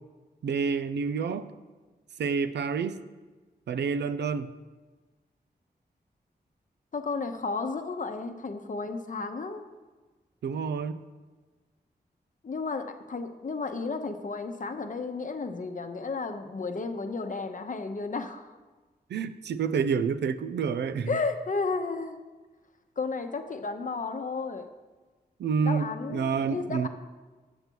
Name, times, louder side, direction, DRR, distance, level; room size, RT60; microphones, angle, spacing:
voice 1, 0.4-1.5 2.2-3.0 3.7-4.5 10.4-11.0 19.1-21.2 25.4-26.9, right 6 dB, 85° right, 11 dB, 0.4 m, -28 dB
voice 2, 6.9-9.6 12.4-18.5 21.1-22.2 23.0-24.7 25.6-26.9, left 4 dB, 50° left, 7 dB, 0.8 m, -33 dB
8.1 x 6.7 x 4.6 m, 1.3 s
cardioid pair, 55°, 17 cm